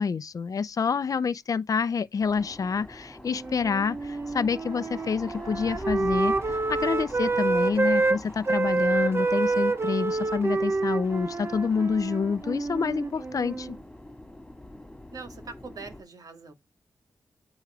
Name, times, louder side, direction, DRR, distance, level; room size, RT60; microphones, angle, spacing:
voice 1, 0.0-13.8, left 5 dB, 55° left, 0.6 m, -28 dB
sound 1, 2.2-16.0, left 1 dB, 10° left, 2.5 m, -44 dB
Wind instrument woodwind instrument, 3.3-8.2 8.4-13.8, right 3 dB, 35° right, 0.6 m, -27 dB
voice 2, 15.1-16.5, right 4 dB, 65° right, 1.9 m, -42 dB
9.1 x 3.2 x 4.8 m
cardioid pair, 55°, 7 cm